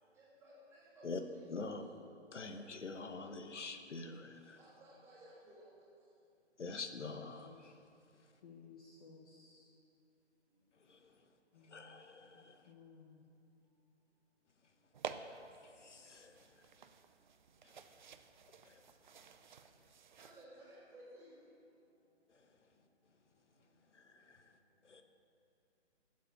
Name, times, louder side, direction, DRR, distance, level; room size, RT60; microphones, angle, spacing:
voice 1, 0.2-1.0 1.3-1.6 4.6-5.7 20.2-21.3, right 1 dB, 5° right, -7 dB, 2.8 m, -58 dB
voice 2, 1.5-1.8 2.3-4.6 6.6-7.7 10.9-11.0 11.7-12.6 15.8-16.3 18.7-18.8 24.9-25.0, left 3 dB, 80° left, 7 dB, 1.2 m, -45 dB
voice 3, 7.4-7.7 8.4-9.7 11.5-12.0 12.3-13.2, left 5 dB, 30° left, 0 dB, 1.0 m, -59 dB
sound 1, 14.9-20.4, right 6 dB, 40° right, 0.6 m, -51 dB
12.0 x 7.6 x 9.0 m, 2.6 s
figure-of-eight pair, 150°, 35 cm